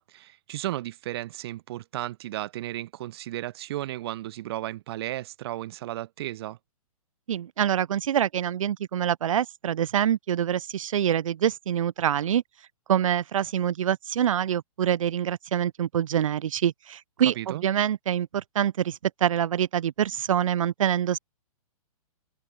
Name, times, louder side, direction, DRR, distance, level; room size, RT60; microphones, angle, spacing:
voice 1, 0.0-6.6 17.2-17.7, right 15 dB, 40° right, 6.2 m, -34 dB
voice 2, 7.3-12.4 12.9-21.2, right 10 dB, 60° right, 4.3 m, -25 dB
hypercardioid pair, 160°, 19 cm